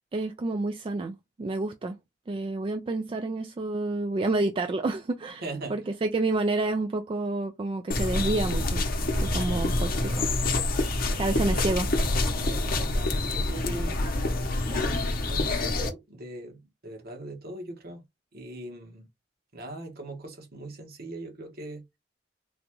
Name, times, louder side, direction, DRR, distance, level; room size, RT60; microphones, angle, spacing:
voice 1, 0.1-2.0 2.3-5.4 5.7-8.8 9.2-10.3 11.2-11.9, right 2 dB, 30° right, 0.3 m, -29 dB
voice 2, 5.4-5.8 11.3-11.6 12.3-14.0 14.6-18.0 18.3-19.1 19.5-21.9, right 2 dB, 55° right, 1.2 m, -40 dB
sound 1, 7.9-15.9, left 2 dB, 50° left, 0.8 m, -27 dB
3.8 x 2.3 x 3.0 m
head